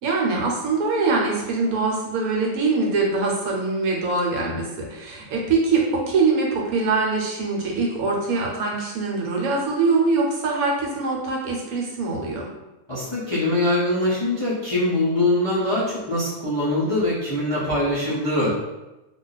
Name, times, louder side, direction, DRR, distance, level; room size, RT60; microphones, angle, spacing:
voice 1, 0.0-12.5, right 3 dB, 80° right, -1 dB, 1.2 m, -23 dB
voice 2, 12.9-18.5, left 1 dB, 35° left, -9 dB, 0.4 m, -23 dB
2.5 x 2.3 x 3.9 m, 1.0 s
omnidirectional pair, 1.6 m